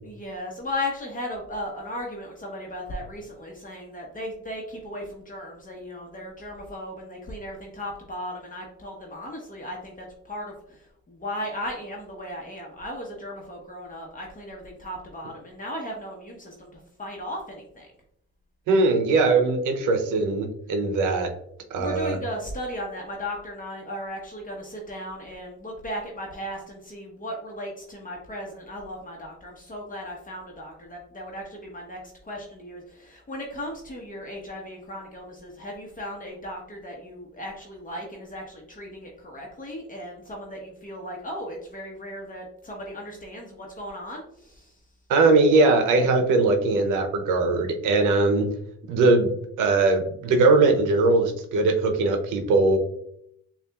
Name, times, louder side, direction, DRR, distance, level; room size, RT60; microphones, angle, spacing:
voice 1, 0.0-17.9 21.8-44.7, left 1 dB, 25° left, -1 dB, 0.9 m, -36 dB
voice 2, 18.7-21.3 21.7-22.2 45.1-48.5 48.9-49.3 49.6-52.8, right 3 dB, 85° right, 5 dB, 0.6 m, -20 dB
6.7 x 2.4 x 2.3 m, 0.72 s
cardioid pair, 90°, 30 cm